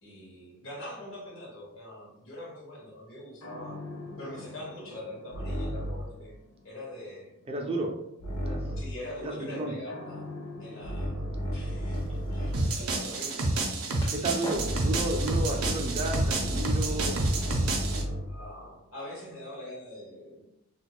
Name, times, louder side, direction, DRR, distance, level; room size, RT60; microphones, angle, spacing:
voice 1, 0.0-3.8 4.2-6.4 6.6-7.3 8.8-10.3 10.6-11.2 11.5-13.5 18.2-20.4, left 1 dB, 70° left, -3 dB, 1.2 m, -43 dB
sound 1, 3.4-6.2 8.2-9.0 9.9-12.9 14.5-18.4, equal, 90° left, 0.6 m, -34 dB
voice 2, 7.5-7.9 8.4-8.6 9.2-9.7 14.1-18.0, right 2 dB, 25° right, 2 dB, 0.4 m, -33 dB
Skateboard, 11.9-17.1, equal, 20° left, 0.5 m, -46 dB
sound 2, 12.5-18.0, right 2 dB, 85° right, 0.6 m, -29 dB
4.1 x 2.3 x 2.3 m, 0.82 s
head